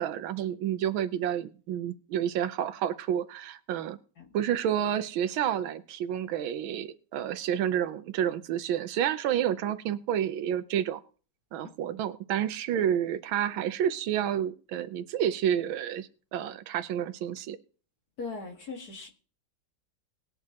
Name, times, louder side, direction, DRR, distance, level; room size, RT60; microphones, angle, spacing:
voice 1, 0.0-4.0 4.3-11.0 11.5-17.6, right 10 dB, 80° right, 12 dB, 1.5 m, -29 dB
voice 2, 18.2-19.1, left 4 dB, 50° left, 2 dB, 2.2 m, -39 dB
19.0 x 10.5 x 2.9 m, 0.39 s
omnidirectional pair, 2.2 m